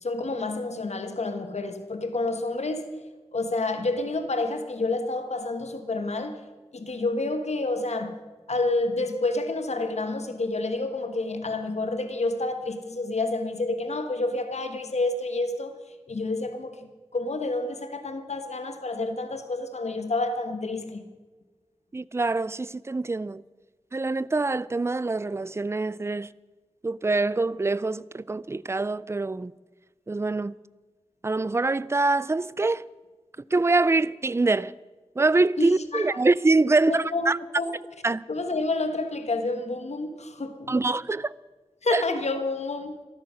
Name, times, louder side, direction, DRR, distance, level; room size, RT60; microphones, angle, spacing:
voice 1, 0.0-6.4 6.7-8.2 8.5-15.8 16.1-21.0 35.6-36.2 36.8-37.7 38.3-40.8 41.8-43.0, left 2 dB, 80° left, 1.2 m, -29 dB
voice 2, 21.9-23.4 23.9-26.3 26.8-29.5 30.1-30.5 31.2-32.8 33.5-34.7 35.2-37.4 38.0-38.2 40.7-41.3 41.9-42.0, right 3 dB, 25° right, 0.4 m, -24 dB
14.5 x 13.0 x 6.2 m
wide cardioid pair, 75°, 11 cm